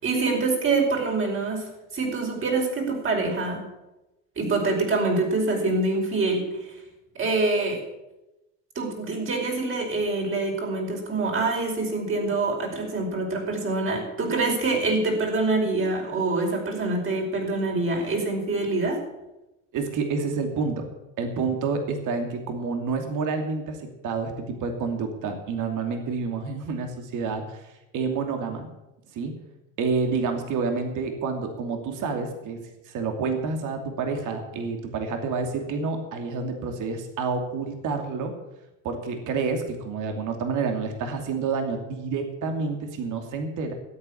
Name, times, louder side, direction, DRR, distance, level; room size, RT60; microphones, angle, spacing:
voice 1, 0.0-3.7 4.4-6.8 7.2-7.8 8.8-19.0, right 3 dB, 35° right, 1 dB, 5.2 m, -25 dB
voice 2, 19.7-20.9 21.2-27.6 27.9-28.7 29.1-29.3 29.8-32.6 32.8-38.3 38.8-43.7, right 4 dB, 55° right, 5 dB, 2.7 m, -28 dB
12.5 x 8.9 x 8.6 m, 0.97 s
supercardioid pair, 100°, 37 cm